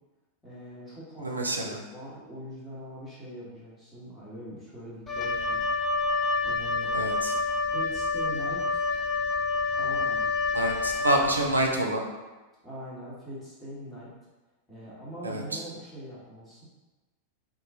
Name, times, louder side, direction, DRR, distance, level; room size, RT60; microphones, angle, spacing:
voice 1, 0.4-6.0 6.4-6.9 7.7-8.8 9.7-10.3 12.6-14.1 14.7-16.6, equal, 5° left, -10 dB, 1.5 m, -42 dB
voice 2, 1.2-1.8 6.9-7.3 10.5-12.0 15.2-15.6, right 1 dB, 80° right, 2 dB, 0.5 m, -27 dB
Wind instrument woodwind instrument, 5.1-11.6, left 3 dB, 20° left, 0.5 m, -28 dB
2.9 x 2.6 x 3.7 m, 1.2 s
figure-of-eight pair, 90°, 0 cm